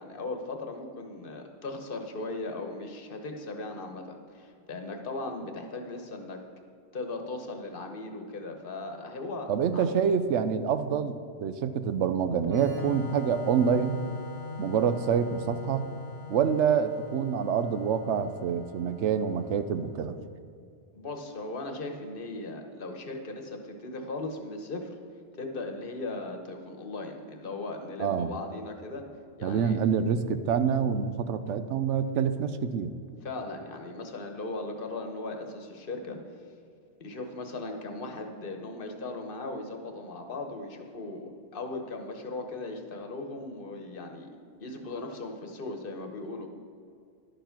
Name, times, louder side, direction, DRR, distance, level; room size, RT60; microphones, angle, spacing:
voice 1, 0.0-6.4 6.9-9.9 20.9-24.9 25.4-29.0 29.4-29.8 33.2-36.2 37.0-44.3 44.6-46.5, left 2 dB, 50° left, 4 dB, 1.2 m, -38 dB
voice 2, 9.5-14.0 14.6-15.9 16.3-20.2 28.0-28.3 29.4-32.9, right 7 dB, 90° right, 11 dB, 1.0 m, -27 dB
Organ, 12.4-20.0, left 2 dB, 15° right, 1.6 m, -41 dB
11.5 x 7.0 x 5.8 m, 2.4 s
omnidirectional pair, 1.2 m